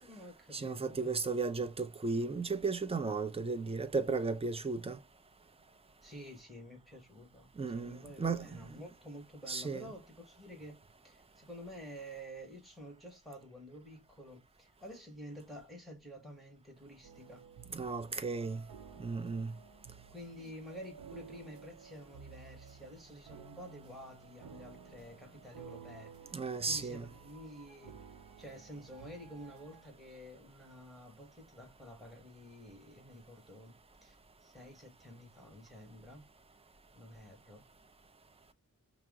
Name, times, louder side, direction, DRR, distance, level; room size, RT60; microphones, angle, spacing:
voice 1, 0.0-1.3 6.0-17.4 20.1-28.0 28.4-36.2 36.9-37.7, equal, ahead, 1.5 m, -50 dB
voice 2, 0.5-5.0 7.6-8.6 9.5-9.8 17.7-18.6 19.0-19.5 26.3-27.1, right 4 dB, 15° right, 0.6 m, -35 dB
sound 1, 17.0-29.9, right 7 dB, 85° right, 0.6 m, -54 dB
5.8 x 2.0 x 3.6 m
wide cardioid pair, 60°, 34 cm